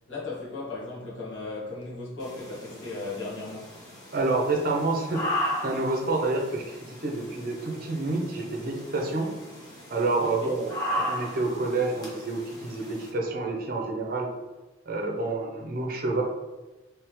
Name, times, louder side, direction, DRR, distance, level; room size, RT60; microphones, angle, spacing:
voice 1, 0.1-3.8 10.2-10.5, left 3 dB, 80° left, -7 dB, 1.5 m, -36 dB
sound 1, 2.2-13.1, left 1 dB, 20° left, 1.0 m, -36 dB
voice 2, 4.1-5.3 5.6-9.3 9.9-14.3 14.9-16.2, right 2 dB, 50° right, 1 dB, 0.6 m, -28 dB
3.5 x 3.2 x 3.0 m, 1.1 s
head